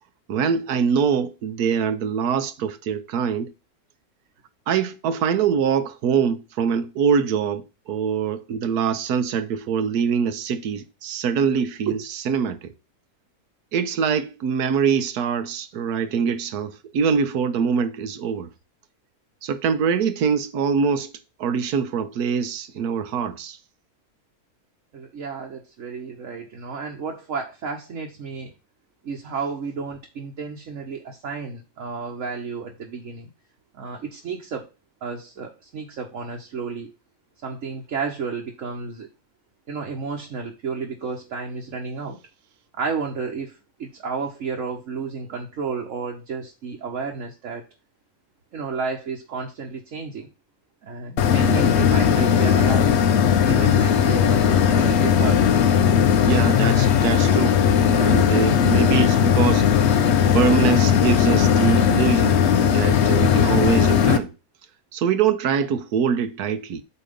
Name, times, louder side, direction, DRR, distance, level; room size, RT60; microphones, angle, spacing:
voice 1, 0.3-3.5 4.7-12.7 13.7-18.5 19.4-21.1 21.4-23.6 56.2-57.6 57.9-59.9 60.3-64.3 64.9-66.8, right 6 dB, 80° right, 1.3 m, -24 dB
voice 2, 24.9-28.5 29.0-33.3 33.7-34.7 35.0-36.9 37.4-39.1 39.7-42.2 42.7-47.6 48.5-50.3 50.8-52.9 53.4-55.4, right 5 dB, 55° right, 1.3 m, -31 dB
sound 1, 51.2-64.2, left 8 dB, 55° left, 0.8 m, -18 dB
8.4 x 3.0 x 5.1 m
omnidirectional pair, 1.7 m